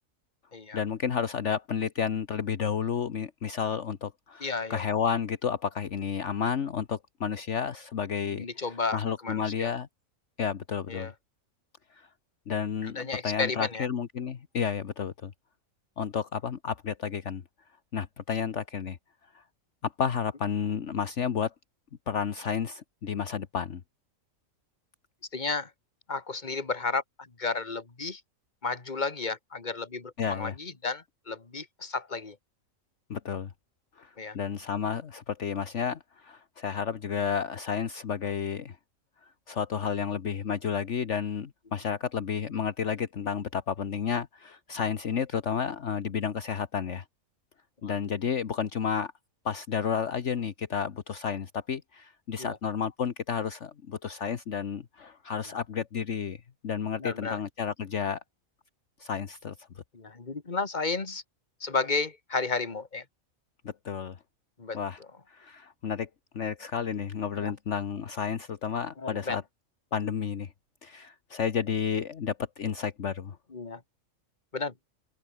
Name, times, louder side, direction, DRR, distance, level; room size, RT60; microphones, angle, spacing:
voice 1, 0.7-8.5 8.9-9.9 10.4-11.1 11.9-12.1 12.5-15.3 16.0-17.4 17.9-19.0 19.3-19.4 19.8-21.5 22.1-23.8 30.2-30.5 33.1-33.5 34.0-38.8 39.2-47.0 47.8-49.1 49.4-58.2 59.0-59.7 63.8-64.2 64.7-65.0 65.3-66.1 66.3-69.4 69.9-70.5 70.8-73.4, left 7 dB, 60° left, 1.5 m, -31 dB
voice 2, 4.4-4.8 8.3-9.7 10.9-11.1 12.8-13.9 25.3-25.7 26.1-28.2 28.6-32.4 34.2-34.4 47.8-47.9 52.4-52.6 57.0-57.4 59.9-61.2 61.6-63.0 64.6-64.8 67.4-67.5 69.0-69.4 73.5-73.8 74.5-74.7, left 4 dB, 35° left, 2.1 m, -33 dB
omnidirectional pair, 1.4 m